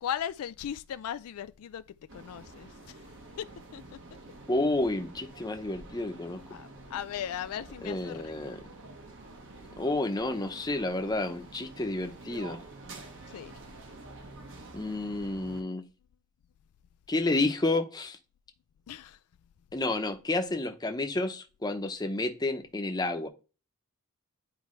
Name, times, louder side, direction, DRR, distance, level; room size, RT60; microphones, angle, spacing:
voice 1, 0.0-1.8 2.1-2.7 3.4-3.5 3.7-3.8 6.5-8.5 13.3-13.5 18.9-19.2, left 9 dB, 75° left, 0.3 m, -37 dB
sound 1, 2.1-15.6, right 2 dB, 55° right, 1.3 m, -48 dB
voice 2, 4.5-6.4 7.8-8.6 9.8-12.6 14.7-15.8 17.1-18.2 19.7-23.3, left 2 dB, 20° left, 0.8 m, -30 dB
9.5 x 4.6 x 3.2 m
head